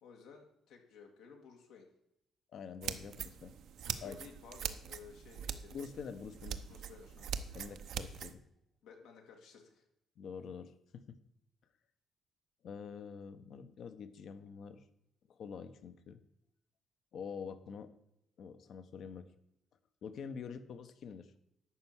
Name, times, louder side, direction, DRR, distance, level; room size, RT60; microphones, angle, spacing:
voice 1, 0.0-1.9 3.8-5.8 6.7-7.3 8.8-9.8, left 6 dB, 90° left, 2 dB, 2.3 m, -55 dB
voice 2, 2.5-3.6 4.0-4.2 5.7-6.6 7.5-8.4 10.2-11.2 12.6-14.8 15.3-16.2 17.1-17.9 18.4-19.3 20.0-21.3, left 6 dB, 65° left, 10 dB, 1.0 m, -46 dB
sound 1, 2.8-8.3, right 8 dB, 75° right, 0.7 m, -42 dB
11.5 x 4.6 x 8.1 m, 0.81 s
cardioid pair, 90°, 0 cm